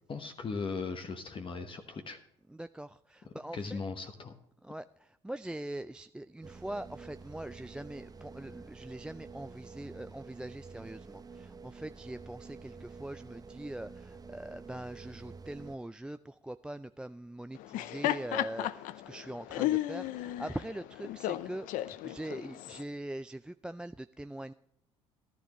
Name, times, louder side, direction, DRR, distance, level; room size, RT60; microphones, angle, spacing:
voice 1, 0.1-2.2 3.5-4.3, left 4 dB, 35° left, 6 dB, 1.1 m, -38 dB
voice 2, 2.5-3.8 4.6-24.5, right 1 dB, 5° right, 13 dB, 0.3 m, -42 dB
sound 1, 6.4-15.8, right 4 dB, 25° right, 0.9 m, -49 dB
Laughter, 17.6-22.8, left 15 dB, 65° left, 0.6 m, -34 dB
14.5 x 11.5 x 3.1 m, 0.75 s
hypercardioid pair, 65°, 14 cm